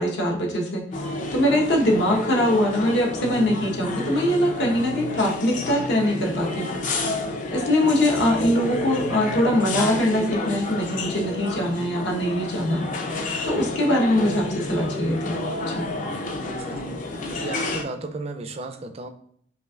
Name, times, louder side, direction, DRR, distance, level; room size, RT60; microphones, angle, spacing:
voice 1, 0.0-6.7 7.5-12.9 13.4-15.4 15.6-15.9, left 1 dB, 75° left, -1 dB, 1.0 m, -22 dB
sound 1, 0.9-17.8, left 2 dB, 45° left, 0.5 m, -30 dB
voice 2, 16.3-16.9 17.3-19.1, right 3 dB, 35° right, 8 dB, 0.3 m, -34 dB
5.3 x 2.5 x 2.3 m, 0.64 s
head